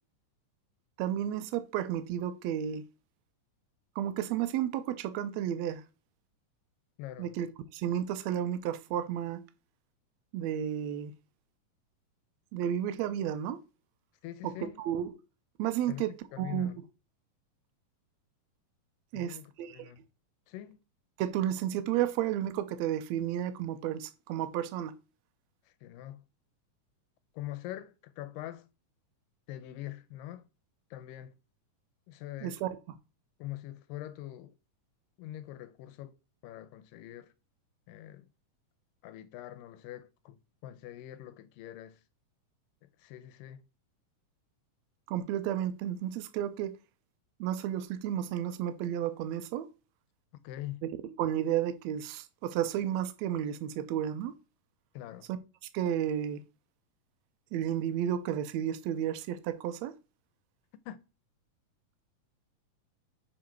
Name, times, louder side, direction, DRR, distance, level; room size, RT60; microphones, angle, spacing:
voice 1, 1.0-2.8 4.0-5.8 7.2-9.4 10.3-11.1 12.5-13.6 14.4-15.2 15.6-16.9 19.1-19.9 21.2-24.9 32.4-32.8 45.1-46.8 47.4-49.7 51.2-54.3 55.3-55.4 55.7-56.4 57.5-59.9, right 10 dB, 90° right, 1.5 m, -32 dB
voice 2, 7.0-7.3 14.2-14.8 15.9-16.0 16.3-16.8 19.1-20.0 20.5-20.8 25.8-26.2 27.4-28.7 29.5-30.4 30.9-31.4 32.1-32.6 33.4-34.5 35.2-36.2 36.4-37.3 37.9-38.3 39.0-42.0 43.0-43.6 50.4-50.8 54.9-55.3 60.9-61.0, left 14 dB, 90° left, 2.3 m, -43 dB
6.9 x 3.8 x 4.5 m
omnidirectional pair, 3.9 m